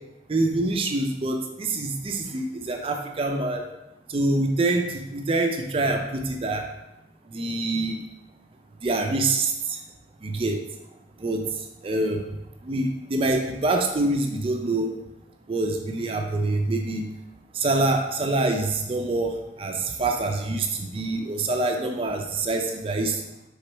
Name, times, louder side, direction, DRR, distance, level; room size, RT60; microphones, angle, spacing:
voice 1, 0.3-3.6 4.1-6.6 7.3-8.0 8.8-9.8 10.2-10.6 11.2-11.5 11.8-12.2 12.6-14.9 15.5-17.1 17.6-19.3 19.6-23.2, right 2 dB, 30° right, 3 dB, 0.4 m, -25 dB
4.3 x 3.5 x 3.0 m, 0.93 s
head